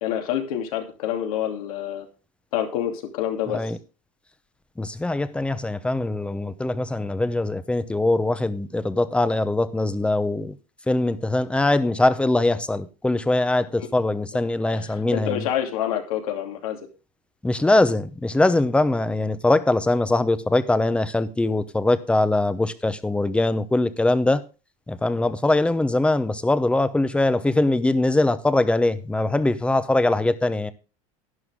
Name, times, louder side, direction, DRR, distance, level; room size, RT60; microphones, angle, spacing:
voice 1, 0.0-2.1 2.5-3.7 13.8-13.9 14.7-16.8, left 10 dB, 85° left, 2.8 m, -27 dB
voice 2, 4.8-10.6 10.9-15.5 17.4-24.4 24.9-30.7, left 2 dB, 5° left, 0.7 m, -22 dB
11.0 x 10.5 x 3.6 m
supercardioid pair, 135°, 18 cm